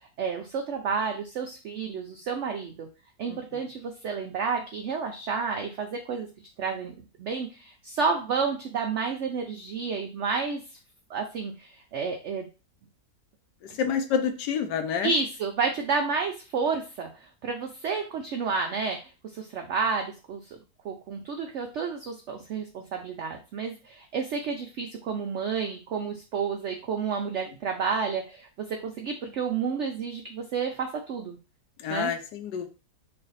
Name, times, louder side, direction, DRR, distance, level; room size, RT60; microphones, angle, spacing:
voice 1, 0.2-2.9 3.2-6.3 6.6-6.9 7.2-10.6 11.1-12.5 15.0-19.0 19.3-20.4 20.8-31.4 31.9-32.1, right 5 dB, 85° right, 3 dB, 0.6 m, -30 dB
voice 2, 13.8-15.1 31.8-32.7, left 7 dB, 85° left, 8 dB, 1.2 m, -28 dB
3.3 x 2.4 x 3.9 m, 0.32 s
omnidirectional pair, 1.8 m